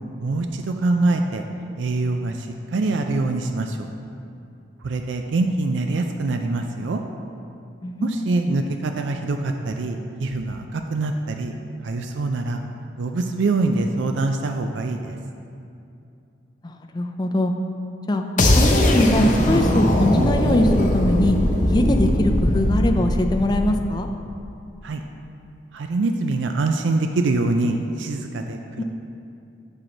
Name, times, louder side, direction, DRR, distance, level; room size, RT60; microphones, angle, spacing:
voice 1, 0.2-1.4 1.8-3.9 4.8-7.0 8.0-11.5 11.8-12.6 13.0-15.2 24.8-25.0 25.7-28.8, right 2 dB, 85° right, 5 dB, 0.4 m, -24 dB
voice 2, 7.8-8.4 16.6-17.5 18.1-18.2 18.6-21.4 21.6-24.1 28.8-28.9, left 1 dB, 20° left, 4 dB, 0.4 m, -22 dB
sound 1, 18.4-24.3, left 1 dB, 40° left, 0.7 m, -20 dB
7.6 x 6.2 x 3.9 m, 2.6 s
head